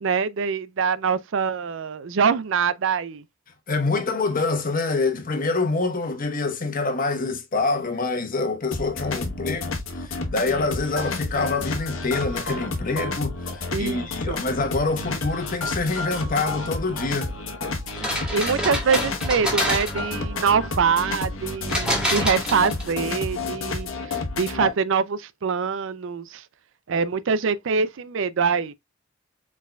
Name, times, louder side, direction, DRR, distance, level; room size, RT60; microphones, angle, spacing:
voice 1, 0.0-3.2 13.7-14.4 18.3-26.4 26.9-28.7, right 6 dB, 65° right, 0.4 m, -24 dB
voice 2, 3.7-17.3, left 3 dB, 45° left, 1.1 m, -26 dB
sound 1, 8.7-24.7, left 3 dB, 90° left, 1.2 m, -30 dB
sound 2, 17.9-20.2 21.7-23.0, equal, 5° right, 2.0 m, -27 dB
4.7 x 4.7 x 2.2 m
head